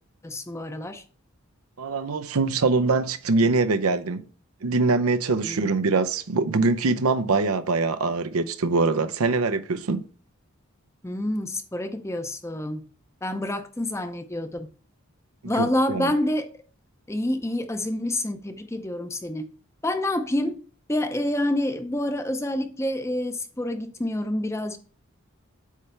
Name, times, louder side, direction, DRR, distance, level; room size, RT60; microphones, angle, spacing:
voice 1, 0.2-1.0 5.4-5.7 11.0-12.8 13.2-14.7 15.4-16.5 17.1-19.5 19.8-20.6 20.9-24.8, left 1 dB, 15° left, 0.6 m, -27 dB
voice 2, 1.8-4.3 4.6-10.0 15.6-16.1, right 3 dB, 85° right, 0.6 m, -23 dB
8.3 x 3.3 x 5.6 m
head